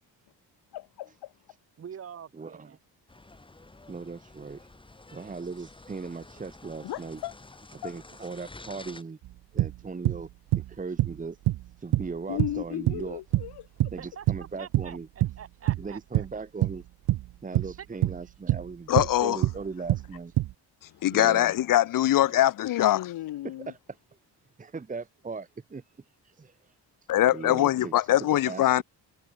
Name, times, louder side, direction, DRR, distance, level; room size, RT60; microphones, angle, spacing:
voice 1, 0.7-1.3 6.8-7.3 7.8-7.9 12.3-13.7 22.6-23.7, left 14 dB, 80° left, 1.3 m, -35 dB
voice 2, 1.8-2.8 14.0-16.3 17.8-18.1, right 8 dB, 35° right, 1.4 m, -45 dB
voice 3, 2.3-2.7 3.9-4.7 5.1-7.2 7.8-9.2 9.5-10.3 10.5-11.4 11.8-13.2 13.9-15.1 15.8-16.8 17.4-20.3 21.1-21.5 23.4-23.8 24.6-25.8 26.2-26.7 27.3-28.8, right 4 dB, 20° right, 1.3 m, -38 dB
sound 1, 3.1-9.0, left 2 dB, 15° left, 3.8 m, -50 dB
sound 2, 9.2-9.3 9.6-10.3 10.5-11.2 11.5-11.7 11.9-12.1 12.4-13.1 13.3-14.5 14.7-15.4 15.7-16.3 16.6-16.8 17.1-17.8 18.0-18.7 19.0-19.2 19.4-19.6 19.9-20.5, right 15 dB, 75° right, 0.8 m, -26 dB
voice 4, 18.9-19.4 21.0-23.0 27.1-28.8, left 13 dB, 55° left, 0.7 m, -22 dB
cardioid pair, 140°, 39 cm